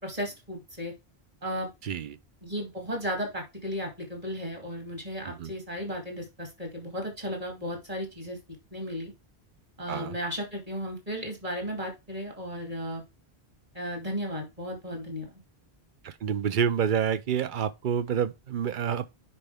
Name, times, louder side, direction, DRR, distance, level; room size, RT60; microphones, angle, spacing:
voice 1, 0.0-0.9 1.4-1.7 2.4-8.4 8.7-9.1 9.8-13.0 13.7-15.3, equal, 35° right, 2.9 m, -35 dB
voice 2, 1.8-2.2 5.4-5.5 9.9-10.1 16.0-19.1, right 8 dB, 55° right, 0.7 m, -28 dB
9.7 x 4.5 x 3.5 m
omnidirectional pair, 1.1 m